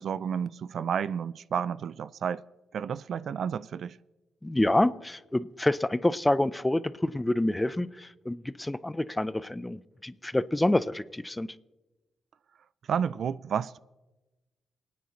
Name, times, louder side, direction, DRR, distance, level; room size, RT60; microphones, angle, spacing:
voice 1, 0.0-2.4 2.7-4.0 12.9-13.8, right 7 dB, 70° right, 0.3 m, -31 dB
voice 2, 4.4-11.5, left 1 dB, 15° left, 0.5 m, -27 dB
28.0 x 9.4 x 3.1 m
cardioid pair, 65°, 0 cm